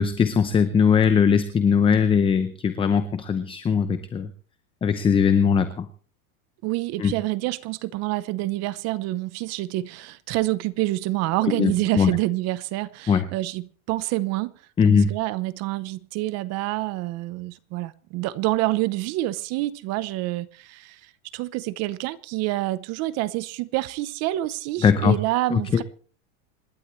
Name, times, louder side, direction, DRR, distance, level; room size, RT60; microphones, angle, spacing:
voice 1, 0.0-4.3 4.8-5.9 7.0-7.1 11.5-12.1 13.1-13.3 14.8-15.1 24.8-25.1 25.5-25.8, left 6 dB, 15° left, 0.7 m, -20 dB
voice 2, 6.6-14.5 14.8-25.8, right 17 dB, 35° right, 0.8 m, -27 dB
27.5 x 11.5 x 3.2 m
supercardioid pair, 150°, 42 cm